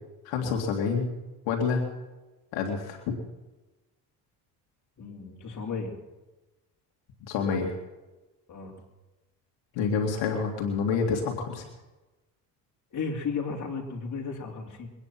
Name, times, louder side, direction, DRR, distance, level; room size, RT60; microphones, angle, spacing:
voice 1, 0.2-1.1 1.5-1.9 2.5-3.2 7.3-7.7 9.7-11.6, left 5 dB, 80° left, 1 dB, 2.6 m, -28 dB
voice 2, 5.0-6.0 8.5-8.8 12.9-14.9, left 5 dB, 40° left, 0 dB, 3.8 m, -34 dB
23.0 x 9.9 x 6.0 m, 1.1 s
supercardioid pair, 85°, 43 cm